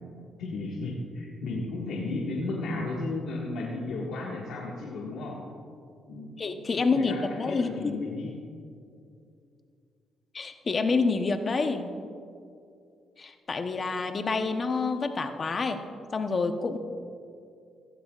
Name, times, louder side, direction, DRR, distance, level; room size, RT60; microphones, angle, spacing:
voice 1, 0.4-5.4 6.1-6.4 6.7-8.4, left 2 dB, 75° left, -4 dB, 1.7 m, -34 dB
voice 2, 6.4-8.1 10.3-11.9 13.2-15.8 16.1-16.8, left 4 dB, 40° left, 7 dB, 0.9 m, -28 dB
16.0 x 15.0 x 2.5 m, 2.5 s
cardioid pair, 90°, 0 cm